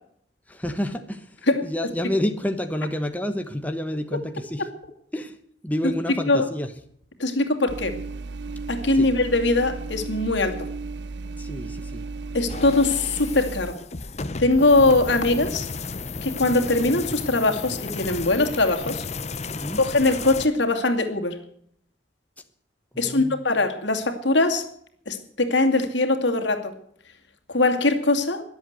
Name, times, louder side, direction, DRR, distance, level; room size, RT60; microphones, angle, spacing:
voice 1, 0.5-4.7 5.1-5.4 5.6-6.7 8.9-9.1 11.4-12.1 19.5-19.8 22.9-23.4, left 1 dB, 10° left, 6 dB, 1.1 m, -29 dB
voice 2, 7.2-8.0 8.7-10.7 12.3-13.8 14.4-15.7 16.2-19.1 19.8-21.4 23.0-24.7 25.1-26.7 27.5-28.4, left 2 dB, 75° left, 5 dB, 2.5 m, -21 dB
sound 1, 7.7-13.7, right 3 dB, 70° right, 0.7 m, -34 dB
sound 2, 12.5-20.5, left 4 dB, 35° left, 0.9 m, -33 dB
22.0 x 7.9 x 8.1 m, 0.67 s
head